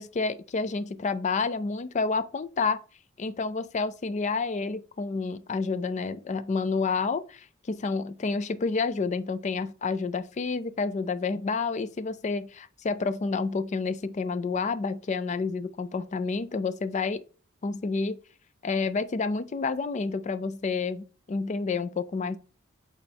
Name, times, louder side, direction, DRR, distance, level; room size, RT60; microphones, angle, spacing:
voice 1, 0.0-2.8 3.2-17.2 17.6-18.2 18.6-22.4, left 4 dB, 35° left, 0.4 m, -29 dB
8.2 x 4.3 x 3.4 m
head